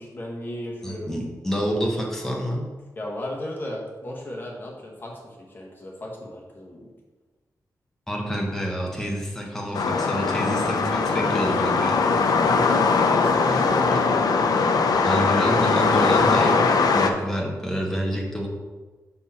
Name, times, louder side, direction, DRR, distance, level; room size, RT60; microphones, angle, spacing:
voice 1, 0.0-1.1 2.9-6.9 12.4-14.2, left 1 dB, 30° left, -3 dB, 1.3 m, -34 dB
voice 2, 0.8-2.7 8.1-11.9 13.9-14.0 15.0-18.5, equal, 5° left, -2 dB, 1.0 m, -28 dB
sound 1, 9.7-17.1, left 4 dB, 80° left, 0.5 m, -20 dB
5.6 x 4.6 x 4.2 m, 1.3 s
wide cardioid pair, 180°, 7 cm